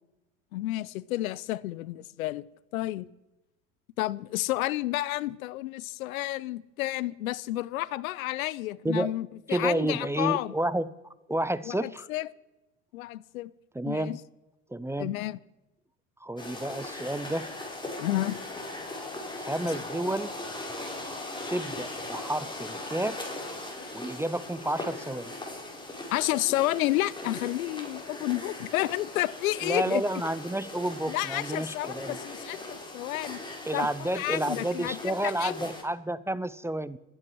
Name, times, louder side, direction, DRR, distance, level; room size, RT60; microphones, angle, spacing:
voice 1, 0.5-2.4 2.7-3.1 4.0-10.5 11.7-12.3 12.9-13.5 13.9-14.2 15.0-15.4 18.0-18.4 19.6-19.7 26.1-30.0 31.1-33.4 33.7-35.6, left 16 dB, 80° left, 0.6 m, -31 dB
voice 2, 9.5-10.9 11.3-12.1 13.7-14.2 14.7-15.1 16.2-17.5 19.4-20.3 21.5-23.2 23.9-25.3 29.6-32.2 33.7-37.0, right 1 dB, 5° right, 0.6 m, -30 dB
sound 1, 16.4-35.8, left 2 dB, 10° left, 4.0 m, -39 dB
25.5 x 9.1 x 4.7 m
hypercardioid pair, 80°, 41 cm